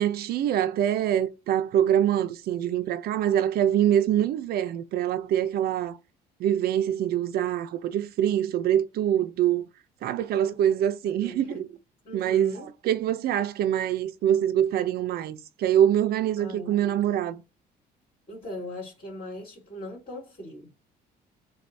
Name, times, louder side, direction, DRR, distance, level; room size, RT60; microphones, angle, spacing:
voice 1, 0.0-6.0 6.4-9.7 10.0-11.5 12.1-12.5 12.8-17.4, right 10 dB, 65° right, 0.5 m, -24 dB
voice 2, 11.0-11.7 12.0-12.7 16.4-16.8 18.3-20.7, left 1 dB, 35° left, 2.7 m, -39 dB
6.7 x 2.3 x 2.6 m
cardioid pair, 110°, 17 cm